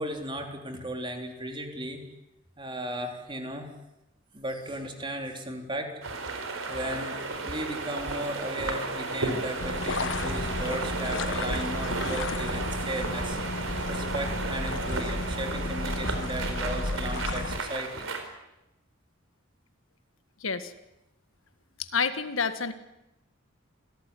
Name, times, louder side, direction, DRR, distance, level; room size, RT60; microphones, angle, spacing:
voice 1, 0.0-2.1 2.6-3.7 4.3-5.9 6.7-18.1, right 1 dB, 25° right, 4 dB, 3.6 m, -36 dB
sound 1, 6.0-18.2, right 3 dB, 80° right, 4.4 m, -33 dB
sound 2, 9.6-17.6, left 2 dB, 65° left, 1.3 m, -33 dB
voice 2, 20.4-20.7 21.8-22.7, left 5 dB, 80° left, 11 dB, 1.8 m, -28 dB
27.0 x 17.0 x 10.0 m, 0.95 s
head